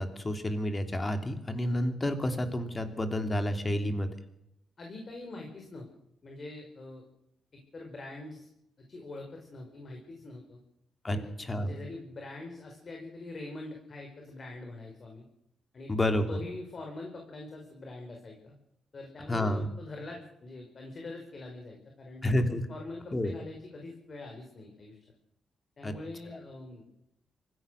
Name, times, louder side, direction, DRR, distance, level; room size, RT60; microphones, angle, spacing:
voice 1, 0.0-4.1 11.0-11.7 15.9-16.3 19.3-19.7 22.2-22.6 23.1-23.3 25.8-25.9, left 1 dB, 25° left, 7 dB, 3.1 m, -29 dB
voice 2, 4.8-5.9 6.2-7.0 7.5-8.5 8.9-10.6 11.1-11.3 11.5-15.2 15.7-15.9 16.3-18.5 18.9-22.2 22.7-25.0 25.8-26.9, left 2 dB, 40° left, 2 dB, 5.1 m, -44 dB
25.0 x 16.0 x 6.4 m, 0.81 s
cardioid pair, 105°, 0 cm